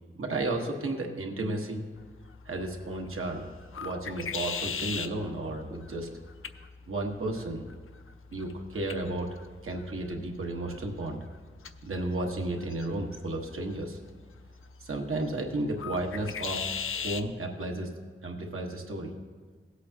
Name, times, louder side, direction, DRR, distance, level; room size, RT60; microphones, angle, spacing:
voice 1, 0.2-1.9 2.5-3.5 3.8-6.2 6.9-7.6 8.3-9.3 9.6-11.2 11.8-14.0 14.8-16.6 16.9-17.9 18.2-19.1, right 2 dB, 90° right, 1 dB, 1.2 m, -33 dB
sound 1, 1.9-17.3, left 6 dB, 80° left, 0.5 m, -41 dB
17.0 x 8.2 x 2.8 m, 1.5 s
wide cardioid pair, 80°, 21 cm